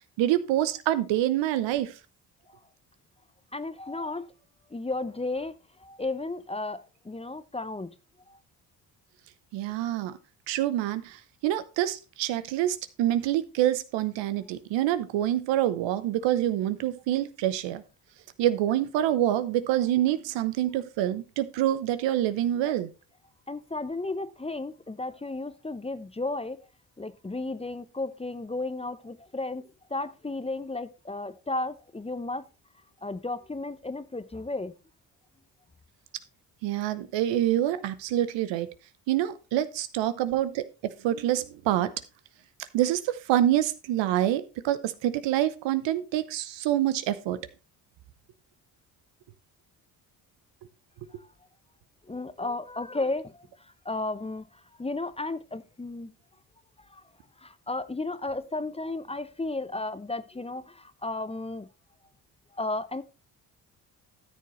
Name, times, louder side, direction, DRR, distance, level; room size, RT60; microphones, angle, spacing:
voice 1, 0.2-1.9 9.5-10.2 10.5-17.8 18.4-22.9 36.6-38.7 39.1-41.9 42.6-47.4, right 12 dB, 85° right, 0.9 m, -26 dB
voice 2, 3.5-4.3 4.7-7.9 8.3-8.4 23.5-26.6 27.0-32.5 33.0-34.7 51.2-51.3 52.0-56.1 56.8-57.0 57.4-61.7 62.5-63.0, left 2 dB, 15° left, 0.7 m, -34 dB
13.0 x 7.0 x 3.1 m
supercardioid pair, 65°, 43 cm